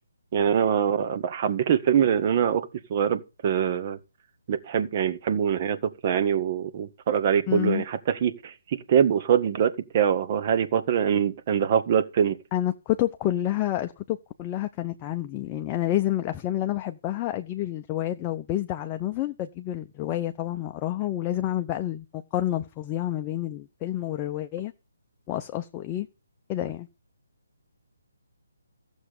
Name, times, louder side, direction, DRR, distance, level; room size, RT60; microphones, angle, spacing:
voice 1, 0.3-4.0 4.5-12.4, right 8 dB, 35° right, 1.8 m, -24 dB
voice 2, 7.5-7.8 12.5-24.7 25.3-26.1 26.5-26.9, left 13 dB, 20° left, 0.8 m, -29 dB
15.0 x 7.3 x 6.8 m
figure-of-eight pair, 145°, 0 cm